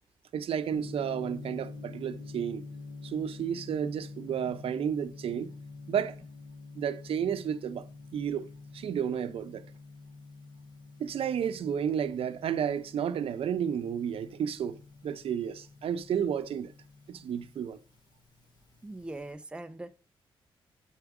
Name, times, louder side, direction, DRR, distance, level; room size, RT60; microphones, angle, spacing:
voice 1, 0.3-2.6 3.0-5.5 5.9-6.2 6.7-8.5 8.7-9.7 11.0-16.7 17.1-17.8, right 8 dB, 75° right, 0.6 m, -32 dB
Gong, 0.7-19.3, left 3 dB, 45° left, 3.2 m, -47 dB
voice 2, 18.8-19.9, right 2 dB, 10° right, 0.5 m, -41 dB
8.0 x 4.6 x 4.7 m
cardioid pair, 115°, 10 cm